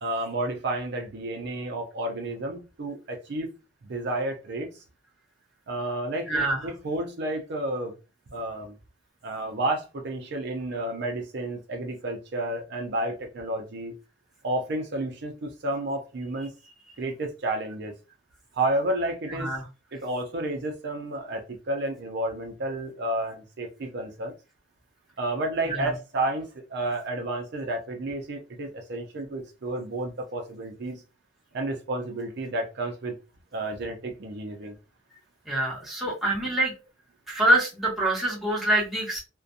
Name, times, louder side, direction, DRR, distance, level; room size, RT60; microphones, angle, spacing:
voice 1, 0.0-3.5 3.8-4.8 5.7-8.0 8.3-8.8 9.2-13.9 14.4-16.5 17.0-17.9 18.5-19.5 19.9-24.3 25.2-31.0 31.5-33.1 33.5-34.8, right 1 dB, 60° right, 0.5 m, -31 dB
voice 2, 6.3-6.7 19.4-19.6 35.5-36.7 37.3-39.2, right 1 dB, ahead, 1.0 m, -25 dB
2.4 x 2.2 x 2.6 m
head